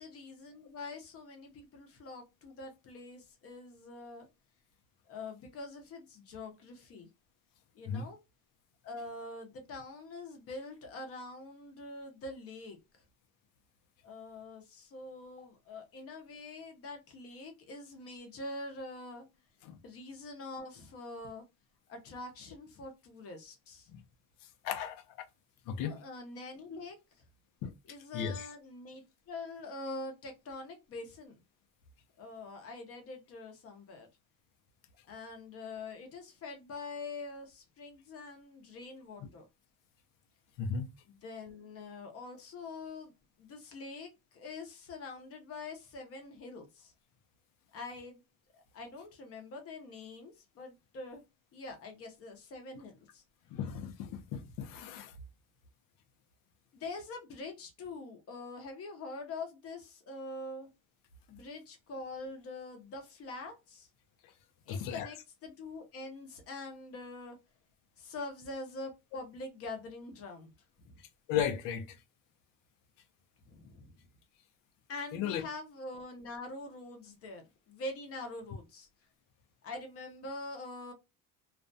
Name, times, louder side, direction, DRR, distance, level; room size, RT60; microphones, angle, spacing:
voice 1, 0.0-4.3 5.1-7.1 7.7-8.2 8.8-12.8 14.0-19.3 19.8-21.4 21.9-23.9 25.7-27.0 27.8-31.4 32.2-34.1 35.1-39.5 41.1-43.1 43.4-46.9 47.7-48.2 48.7-51.2 51.5-53.2 56.7-60.7 61.3-63.9 64.7-67.4 68.0-70.5 70.8-71.0 73.5-73.9 74.9-78.9 79.6-80.9, left 2 dB, 45° left, 0.7 m, -44 dB
voice 2, 24.6-25.0 25.7-26.0 27.6-27.7 28.1-28.4 40.6-40.9 53.5-55.1 64.7-65.1 71.3-72.0 75.1-75.5, left 7 dB, 90° left, 0.6 m, -35 dB
2.4 x 2.2 x 2.5 m
cardioid pair, 165°, 32 cm